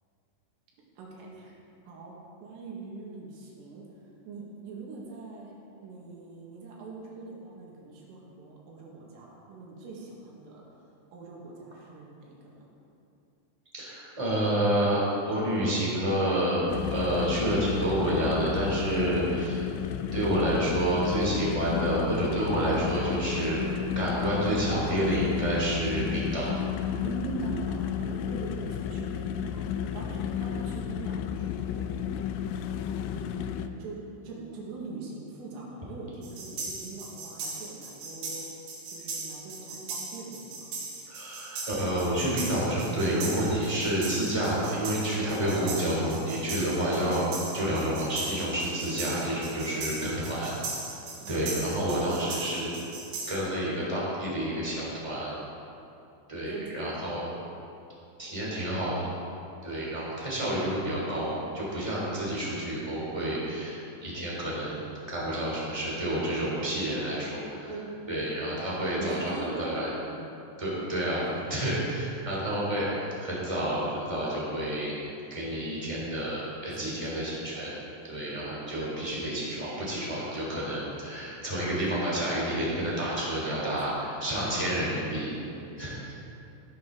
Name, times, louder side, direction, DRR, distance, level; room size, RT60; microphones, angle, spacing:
voice 1, 1.0-1.6 1.9-2.1 2.4-3.8 4.3-10.6 11.1-12.7 27.0-29.7 29.9-31.9 33.1-38.5 38.9-40.7 51.2-51.5 56.4-57.0 67.7-67.9 69.0-70.3 71.1-71.5 76.7-77.3 78.0-78.3 81.7-82.0 83.7-83.9 85.5-86.1, right 3 dB, 80° right, -3 dB, 4.4 m, -42 dB
voice 2, 13.7-19.7 20.1-23.6 23.9-26.5 41.1-47.3 47.5-50.5 51.3-52.7 53.3-55.3 56.3-57.2 58.2-59.1 59.6-67.7 68.1-69.9 70.6-71.2 71.5-74.9 75.3-77.7 78.0-85.3 85.8-86.1, right 1 dB, 10° right, -6 dB, 1.8 m, -29 dB
sound 1, 16.7-33.7, left 9 dB, 90° left, 2.6 m, -32 dB
sound 2, 36.2-53.4, right 3 dB, 60° right, 4.2 m, -39 dB
16.0 x 11.0 x 3.8 m, 2.7 s
omnidirectional pair, 5.9 m